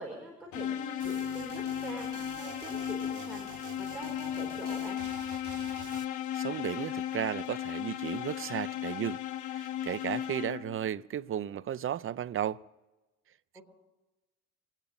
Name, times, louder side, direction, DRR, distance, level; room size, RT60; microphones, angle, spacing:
voice 1, 0.0-2.1 2.3-5.0 13.5-13.6, right 1 dB, 5° right, 4.4 m, -44 dB
sound 1, 0.5-10.9, left 10 dB, 75° left, 1.0 m, -36 dB
sound 2, 1.0-6.0, right 10 dB, 75° right, 1.1 m, -48 dB
voice 2, 6.3-9.2 9.5-12.6 13.6-13.7, right 10 dB, 45° right, 0.5 m, -34 dB
25.0 x 9.0 x 5.2 m
cardioid pair, 90°, 30 cm